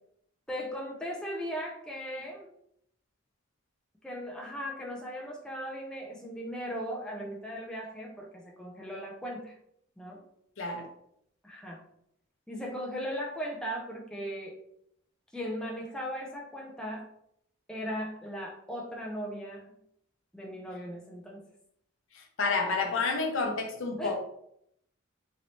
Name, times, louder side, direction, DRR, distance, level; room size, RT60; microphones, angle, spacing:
voice 1, 0.5-2.5 4.0-9.6 10.0-10.2 11.4-11.8 12.5-14.6 15.3-17.1 17.7-19.6 20.3-21.4 24.0-24.1, equal, 5° left, -2 dB, 0.4 m, -38 dB
voice 2, 10.6-10.9 22.1-24.1, left 4 dB, 65° left, 3 dB, 0.6 m, -30 dB
3.1 x 2.6 x 2.9 m, 0.74 s
head